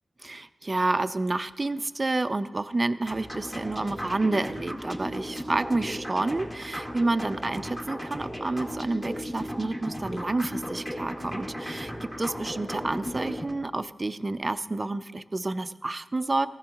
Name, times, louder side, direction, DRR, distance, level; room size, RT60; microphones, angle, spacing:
voice 1, 0.2-16.5, right 2 dB, 30° right, 12 dB, 0.5 m, -29 dB
sound 1, 3.0-13.5, equal, 15° left, 2.1 m, -36 dB
18.5 x 15.0 x 3.0 m, 1.3 s
wide cardioid pair, 85°, 0 cm